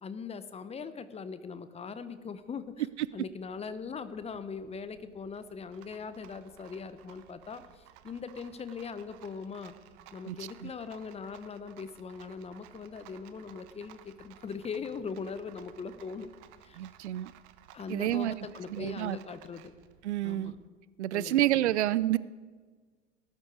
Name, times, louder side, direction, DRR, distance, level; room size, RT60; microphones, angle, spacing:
voice 1, 0.0-2.6 3.1-9.8 10.1-16.3 16.6-16.8 17.7-19.7 20.2-20.5 21.1-21.8, left 5 dB, 15° left, 13 dB, 0.9 m, -40 dB
Rattle, 2.1-20.7, right 12 dB, 45° right, 1.0 m, -57 dB
voice 2, 16.8-17.3 17.9-18.3 18.7-19.2 20.0-20.5 21.0-22.2, right 14 dB, 65° right, 19 dB, 0.5 m, -28 dB
19.0 x 12.0 x 4.7 m, 1.4 s
figure-of-eight pair, 85°, 37 cm